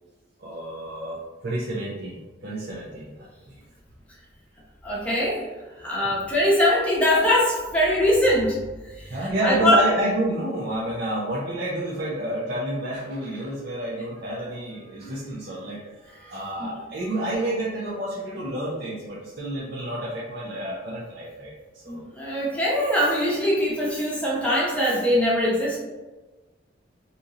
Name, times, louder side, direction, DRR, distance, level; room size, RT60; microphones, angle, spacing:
voice 1, 0.4-3.5 6.0-6.1 9.1-22.0, right 1 dB, 55° right, -6 dB, 0.5 m, -30 dB
voice 2, 4.8-5.5 5.8-8.6 8.8-9.8 16.2-16.7 21.9-25.8, left 1 dB, 5° left, -7 dB, 0.8 m, -22 dB
2.8 x 2.6 x 3.6 m, 1.2 s
head